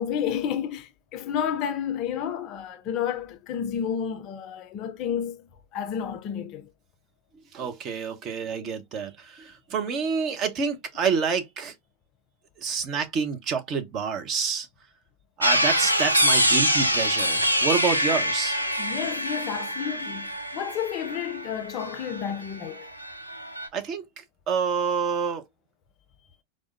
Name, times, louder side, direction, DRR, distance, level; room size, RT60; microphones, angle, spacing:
voice 1, 0.0-5.5 5.7-6.7 18.1-18.2 18.8-22.9, left 8 dB, 40° left, 0.5 m, -31 dB
voice 2, 7.5-11.7 12.6-14.7 15.4-18.6 23.7-25.4, right 6 dB, 35° right, 0.7 m, -28 dB
sound 1, 15.4-22.6 22.8-23.7, equal, 85° right, 0.5 m, -25 dB
4.7 x 2.1 x 2.5 m
figure-of-eight pair, 90°, 0 cm